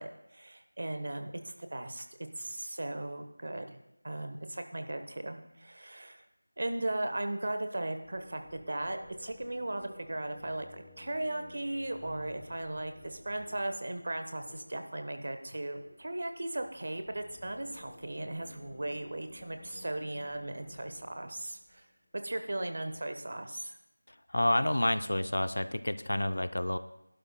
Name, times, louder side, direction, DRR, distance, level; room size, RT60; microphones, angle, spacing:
voice 1, 0.0-3.7 4.0-6.2 6.6-21.9 22.1-23.8, right 1 dB, 45° right, 7 dB, 1.0 m, -37 dB
sound 1, 8.0-21.9 22.3-23.0, left 2 dB, 10° left, 0.9 m, -55 dB
voice 2, 24.3-26.8, left 1 dB, 65° left, 11 dB, 0.6 m, -29 dB
20.5 x 11.5 x 2.2 m, 0.83 s
figure-of-eight pair, 170°, 0 cm